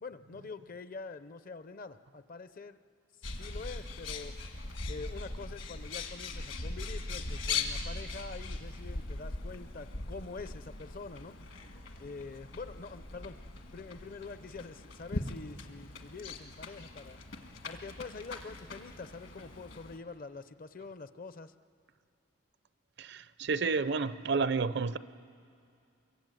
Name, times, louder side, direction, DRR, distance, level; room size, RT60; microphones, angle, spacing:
voice 1, 0.0-2.8 3.2-4.4 4.9-11.4 12.0-13.4 13.7-17.2 17.6-21.5, left 4 dB, 40° left, 13 dB, 0.6 m, -45 dB
Bird, 3.2-20.0, left 3 dB, 65° left, 1.7 m, -40 dB
voice 2, 23.0-25.0, right 4 dB, 55° right, 15 dB, 0.5 m, -30 dB
24.0 x 22.5 x 9.1 m, 2.4 s
head